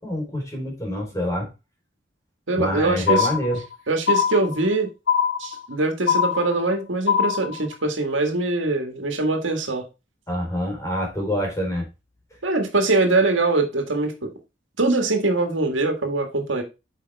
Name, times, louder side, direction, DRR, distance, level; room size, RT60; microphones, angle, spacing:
voice 1, 0.0-1.5 2.6-3.6 10.3-11.8, equal, 15° left, 3.9 m, -26 dB
voice 2, 2.5-3.3 3.9-4.9 5.4-9.8 12.4-14.3 14.8-16.6, right 2 dB, 80° right, 1.8 m, -22 dB
sound 1, 3.1-3.7 4.1-4.7 5.1-5.7 6.1-6.7 7.1-7.7, left 7 dB, 60° left, 0.7 m, -22 dB
8.4 x 5.2 x 3.4 m
head